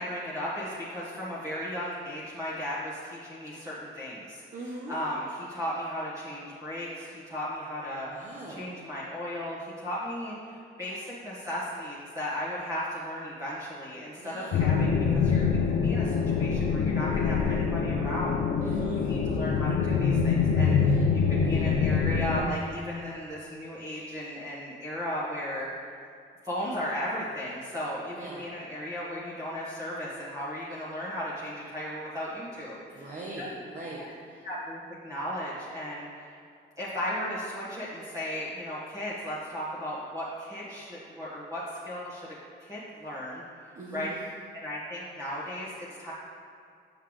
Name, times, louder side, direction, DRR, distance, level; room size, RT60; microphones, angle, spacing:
voice 1, 0.0-4.4 4.9-18.4 19.0-25.7 26.4-33.5 34.0-34.1 34.4-36.3 36.8-44.1 44.5-46.1, equal, 15° right, -8 dB, 1.4 m, -36 dB
voice 2, 4.5-5.0 8.0-8.7 14.2-14.7 18.6-19.1 20.7-21.0 28.1-28.5 32.9-34.5 43.8-44.1, right 2 dB, 40° right, -4 dB, 0.9 m, -41 dB
sound 1, 14.5-22.4, left 5 dB, 70° left, 0.6 m, -25 dB
7.0 x 5.6 x 3.2 m, 2.4 s
cardioid pair, 90°, 20 cm